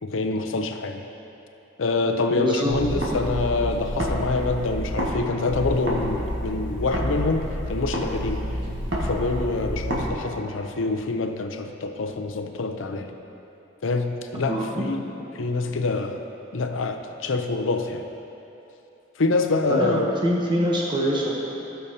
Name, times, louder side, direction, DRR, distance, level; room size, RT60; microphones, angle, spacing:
voice 1, 0.0-1.0 1.8-8.5 9.0-13.1 13.8-15.0 15.3-16.2 16.5-18.0 19.2-20.1, left 3 dB, 85° left, 6 dB, 0.6 m, -26 dB
voice 2, 2.3-2.7 14.5-14.9 19.7-21.4, equal, 25° right, -3 dB, 0.9 m, -24 dB
sound 1, 2.7-5.1 5.4-10.1, equal, 65° right, 1.5 m, -29 dB
15.5 x 6.9 x 2.8 m, 3.0 s
head